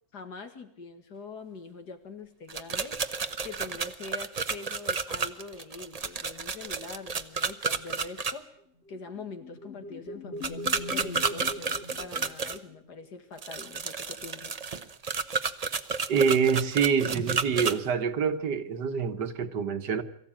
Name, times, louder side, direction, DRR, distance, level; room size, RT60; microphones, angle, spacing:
voice 1, 0.1-3.2 3.4-8.6 8.9-14.5, left 4 dB, 75° left, 2.5 m, -43 dB
sound 1, 2.5-8.3 10.4-12.6 13.4-17.7, right 5 dB, 35° right, 0.7 m, -31 dB
sound 2, 8.9-12.9, left 2 dB, 40° left, 2.9 m, -41 dB
voice 2, 16.1-20.0, right 6 dB, 80° right, 1.9 m, -26 dB
23.0 x 15.0 x 8.8 m
omnidirectional pair, 1.8 m